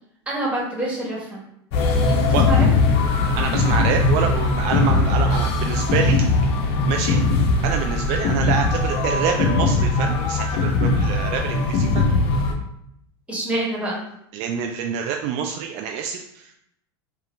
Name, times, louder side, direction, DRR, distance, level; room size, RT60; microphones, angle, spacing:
voice 1, 0.3-1.4 2.1-2.7 13.3-14.0, right 1 dB, 10° right, -4 dB, 1.5 m, -26 dB
sound 1, 1.7-12.5, left 3 dB, 50° left, 0.8 m, -20 dB
voice 2, 2.3-2.6 3.4-6.3 6.9-7.2 7.6-12.1 14.3-16.6, right 7 dB, 50° right, 4 dB, 0.4 m, -27 dB
4.7 x 2.4 x 3.3 m, 0.75 s
hypercardioid pair, 110°, 14 cm